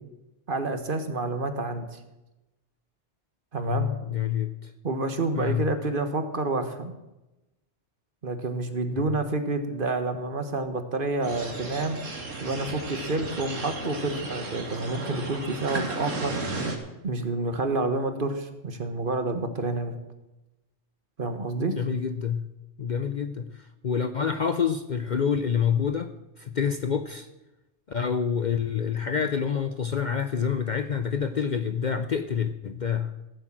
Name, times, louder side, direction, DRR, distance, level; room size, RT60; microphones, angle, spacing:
voice 1, 0.5-2.0 3.5-3.9 4.8-6.9 8.2-12.0 12.4-16.3 17.0-19.9 21.2-21.8, right 2 dB, 45° right, 8 dB, 1.4 m, -29 dB
voice 2, 3.7-4.7 5.3-5.7 9.0-9.2 21.7-22.5 22.8-27.3 27.9-33.1, left 7 dB, 50° left, 10 dB, 0.7 m, -27 dB
sound 1, 11.2-16.8, right 2 dB, 90° right, 2.4 m, -34 dB
16.0 x 8.2 x 7.5 m, 0.99 s
omnidirectional pair, 1.3 m